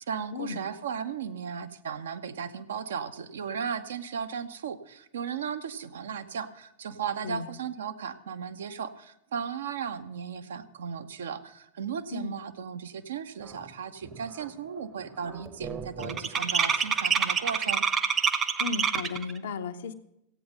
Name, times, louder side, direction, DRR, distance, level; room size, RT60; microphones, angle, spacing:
voice 1, 0.0-17.8, right 7 dB, 65° right, 9 dB, 0.8 m, -36 dB
sound 1, 13.6-13.7 14.0-14.4 14.7-19.3, right 6 dB, 25° right, 0.9 m, -27 dB
voice 2, 18.6-19.9, left 5 dB, 60° left, 8 dB, 0.9 m, -34 dB
15.5 x 8.6 x 6.5 m, 0.81 s
figure-of-eight pair, 90°, 0 cm